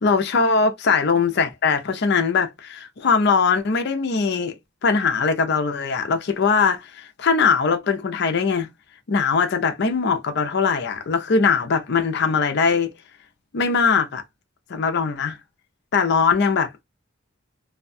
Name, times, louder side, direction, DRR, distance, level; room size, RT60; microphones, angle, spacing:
voice 1, 0.0-4.5 4.8-8.7 9.1-12.9 13.5-14.2 14.7-15.4 15.9-16.7, left 5 dB, 50° left, 0.5 m, -21 dB
2.6 x 2.1 x 2.5 m
head